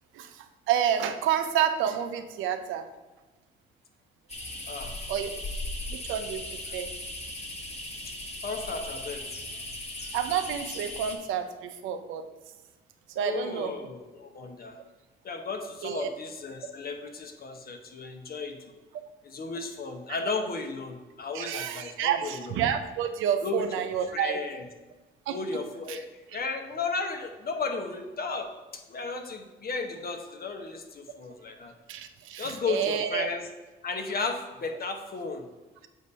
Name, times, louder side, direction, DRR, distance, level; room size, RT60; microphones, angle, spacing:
voice 1, 0.7-2.8 5.1-5.4 5.9-6.4 6.7-6.9 10.1-12.2 13.2-13.7 15.8-16.1 21.3-24.4 25.3-25.4 25.9-26.0 31.9-33.3, right 9 dB, 85° right, 8 dB, 0.6 m, -29 dB
sound 1, 4.3-11.2, left 1 dB, 35° left, 1.5 m, -38 dB
voice 2, 4.7-5.0 8.4-9.3 13.2-14.8 15.2-18.8 19.2-22.6 23.4-23.6 24.1-24.6 25.3-31.7 32.4-33.5 33.8-35.5, left 4 dB, 50° left, 5 dB, 1.1 m, -34 dB
7.7 x 2.7 x 5.3 m, 1.2 s
supercardioid pair, 60°, 20 cm